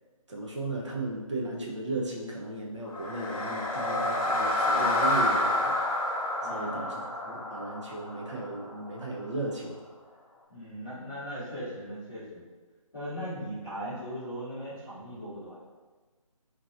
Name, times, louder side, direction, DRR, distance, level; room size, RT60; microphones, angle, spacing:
voice 1, 0.3-5.7 6.5-9.8, right 2 dB, 55° right, -2 dB, 0.8 m, -35 dB
sound 1, 2.9-9.0, left 1 dB, 80° left, 0.9 m, -29 dB
voice 2, 6.4-6.9 10.5-12.4 12.9-15.6, equal, ahead, -34 dB, 0.4 m, -38 dB
3.8 x 2.8 x 2.5 m, 1.3 s
figure-of-eight pair, 165°, 18 cm